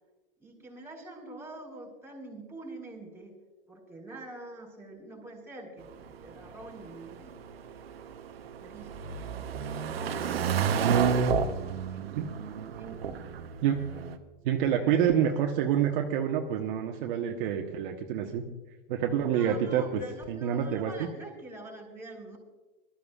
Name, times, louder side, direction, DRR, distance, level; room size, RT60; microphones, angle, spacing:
voice 1, 0.4-3.4 3.7-7.4 8.6-9.1 9.6-10.5 10.9-12.2 12.7-13.4 13.9-14.0 14.8-15.9 19.3-22.4, right 2 dB, 10° right, -2 dB, 4.5 m, -46 dB
sound 1, 5.8-14.2, right 6 dB, 90° right, 1.0 m, -31 dB
voice 2, 14.4-18.4 18.9-20.0 20.3-20.9, right 9 dB, 60° right, 2 dB, 1.3 m, -27 dB
22.5 x 13.0 x 2.4 m, 1.1 s
hypercardioid pair, 120°, 29 cm